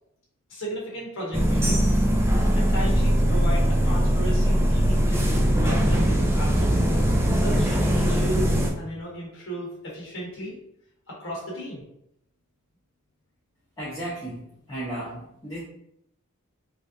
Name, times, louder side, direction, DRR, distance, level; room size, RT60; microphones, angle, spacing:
voice 1, 0.5-2.0 2.3-6.8 7.3-8.5 8.8-10.5 11.1-11.8, equal, 60° left, -4 dB, 1.0 m, -35 dB
sound 1, 1.3-8.7, equal, 10° right, 0.3 m, -21 dB
voice 2, 13.8-15.6, right 1 dB, 20° left, -12 dB, 0.8 m, -34 dB
3.1 x 2.5 x 2.6 m, 0.77 s
head